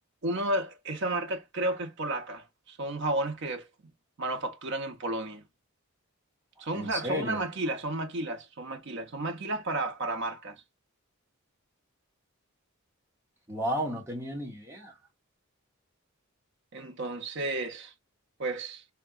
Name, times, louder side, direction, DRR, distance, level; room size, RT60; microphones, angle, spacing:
voice 1, 0.2-3.7 4.2-5.4 6.6-10.6 16.7-17.9 18.4-18.8, right 2 dB, 55° right, 0.6 m, -32 dB
voice 2, 6.7-7.4 13.5-15.0, equal, 10° right, 1.2 m, -33 dB
3.4 x 2.8 x 2.3 m
head